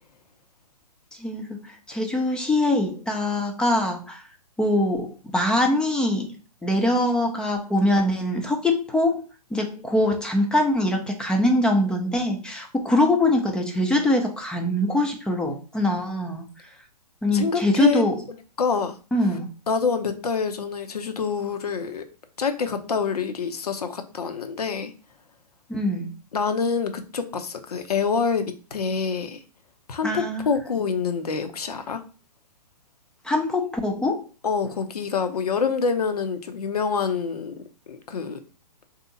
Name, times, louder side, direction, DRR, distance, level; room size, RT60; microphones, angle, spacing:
voice 1, 1.2-4.2 4.6-6.3 6.6-16.5 17.2-18.2 19.1-19.5 25.7-26.1 30.0-30.5 33.2-34.2, left 1 dB, 5° left, 3 dB, 0.4 m, -23 dB
voice 2, 17.3-18.0 18.6-18.9 19.7-22.0 22.4-24.9 26.3-28.5 28.7-29.4 29.9-32.0 34.4-37.5 37.9-38.4, left 5 dB, 65° left, 8 dB, 0.8 m, -26 dB
3.4 x 2.8 x 4.0 m, 0.35 s
figure-of-eight pair, 120°, 21 cm